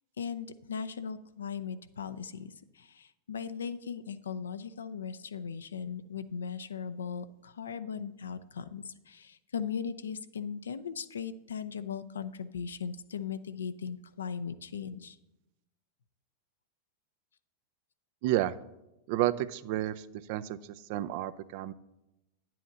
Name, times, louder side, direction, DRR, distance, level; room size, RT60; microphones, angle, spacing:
voice 1, 0.2-15.2, left 7 dB, 80° left, 13 dB, 0.5 m, -38 dB
voice 2, 18.2-18.5 19.1-20.6 20.9-21.7, right 14 dB, 55° right, 15 dB, 0.4 m, -31 dB
10.0 x 7.6 x 4.0 m, 0.93 s
hypercardioid pair, 95°, 0 cm